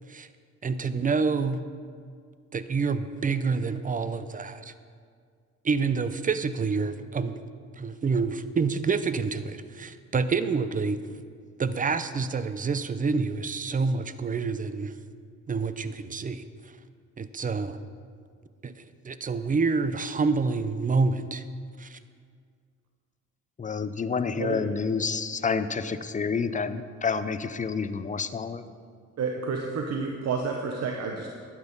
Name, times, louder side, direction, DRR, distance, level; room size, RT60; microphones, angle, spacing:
voice 1, 0.6-1.6 2.5-4.7 5.6-7.4 7.8-11.0 11.6-14.9 15.5-16.5 17.2-17.8 18.6-21.4 21.8-22.0, right 4 dB, 25° right, 12 dB, 0.6 m, -27 dB
voice 2, 23.6-28.7, left 5 dB, 25° left, 12 dB, 0.6 m, -29 dB
voice 3, 29.2-31.3, right 5 dB, 60° right, 2 dB, 1.1 m, -30 dB
12.0 x 9.0 x 5.4 m, 2.1 s
cardioid pair, 90°, 30 cm